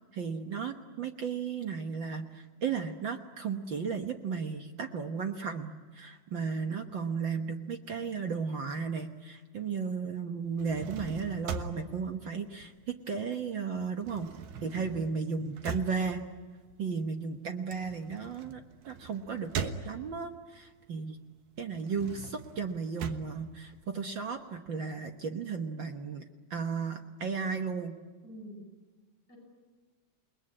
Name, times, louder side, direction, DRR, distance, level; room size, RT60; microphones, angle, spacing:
voice 1, 0.1-14.3 14.6-16.2 16.8-21.2 21.6-26.2 26.5-28.0, right 5 dB, 55° right, 5 dB, 1.5 m, -35 dB
sound 1, 10.4-13.3 13.6-20.4 20.9-24.4, right 5 dB, 75° right, 2.7 m, -41 dB
voice 2, 14.6-15.1 28.2-28.7 29.3-29.4, equal, 30° left, 1 dB, 7.9 m, -48 dB
29.0 x 20.5 x 9.8 m, 1.4 s
omnidirectional pair, 3.3 m